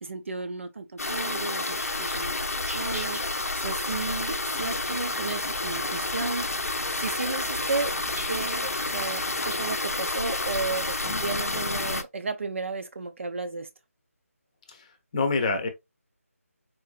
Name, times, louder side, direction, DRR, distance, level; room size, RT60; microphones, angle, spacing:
voice 1, 0.0-6.5 7.0-8.0 8.3-13.7, right 4 dB, 55° right, 0.7 m, -33 dB
sound 1, 1.0-12.0, left 2 dB, 80° left, 0.6 m, -30 dB
sound 2, 1.7-4.8 5.3-6.2 6.6-9.7, equal, 90° right, 1.8 m, -46 dB
sound 3, 4.5-9.7, right 2 dB, 10° right, 0.6 m, -45 dB
voice 2, 14.7-15.7, left 3 dB, 25° left, 0.8 m, -27 dB
4.4 x 2.6 x 2.4 m
figure-of-eight pair, 160°, 8 cm